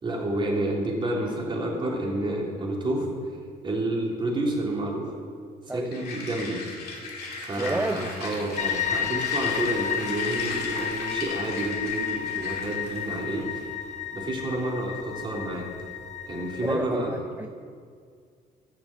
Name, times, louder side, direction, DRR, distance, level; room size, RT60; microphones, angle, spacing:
voice 1, 0.0-3.1 3.6-5.1 5.7-6.6 7.3-13.6 14.1-15.7 16.3-17.1, right 1 dB, 30° right, -2 dB, 3.3 m, -29 dB
sound 1, 5.9-13.0, left 3 dB, 65° left, 2.3 m, -37 dB
Applause / Crowd, 6.4-14.2, right 5 dB, 75° right, 2.0 m, -47 dB
voice 2, 7.6-8.1 16.6-17.5, right 2 dB, 10° right, 5 dB, 0.5 m, -30 dB
sound 2, 8.6-16.7, left 10 dB, 45° left, 0.9 m, -32 dB
14.0 x 7.3 x 7.4 m, 2.1 s
cardioid pair, 110°, 17 cm